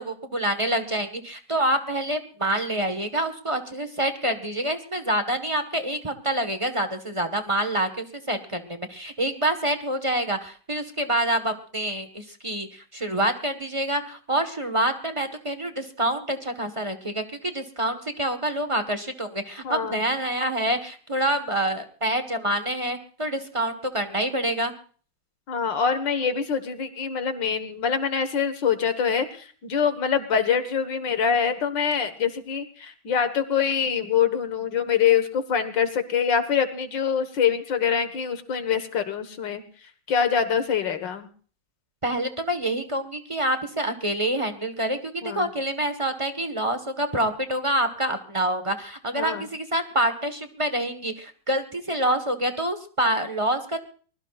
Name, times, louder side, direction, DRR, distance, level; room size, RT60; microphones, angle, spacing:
voice 1, 0.0-24.7 42.0-53.8, right 1 dB, 20° right, 7 dB, 1.2 m, -27 dB
voice 2, 19.6-20.0 25.5-39.6 40.1-41.3 45.2-45.5 49.1-49.5, left 7 dB, 65° left, 10 dB, 2.2 m, -24 dB
24.0 x 21.0 x 2.5 m, 0.43 s
omnidirectional pair, 2.1 m